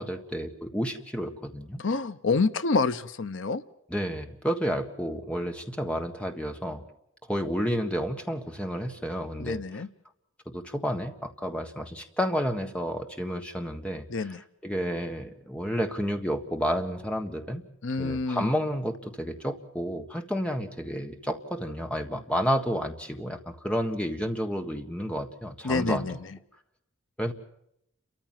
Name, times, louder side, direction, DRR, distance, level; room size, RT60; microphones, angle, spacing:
voice 1, 0.0-1.8 3.9-6.8 7.2-9.6 10.5-14.0 14.6-17.6 18.0-26.1 27.2-27.3, equal, 5° left, 5 dB, 1.5 m, -31 dB
voice 2, 1.8-3.6 9.4-9.9 14.1-14.4 17.8-18.5 25.6-26.2, left 4 dB, 70° left, 13 dB, 0.7 m, -27 dB
30.0 x 14.0 x 7.4 m, 0.78 s
head